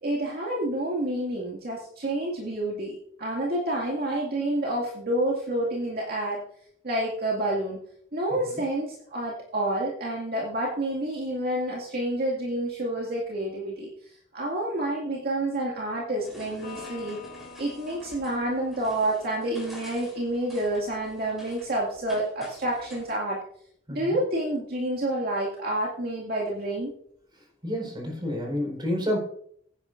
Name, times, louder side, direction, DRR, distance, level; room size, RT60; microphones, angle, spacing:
voice 1, 0.0-6.4 6.8-7.8 8.1-13.9 14.3-17.2 17.6-23.4 23.9-26.9, right 1 dB, 55° right, -3 dB, 2.2 m, -29 dB
sound 1, 16.1-23.1, equal, ahead, 3.6 m, -49 dB
Electric guitar, 16.6-20.2, left 4 dB, 55° left, 4.6 m, -47 dB
voice 2, 27.6-29.2, left 1 dB, 25° right, 0 dB, 4.5 m, -29 dB
15.5 x 10.5 x 2.6 m, 0.65 s
head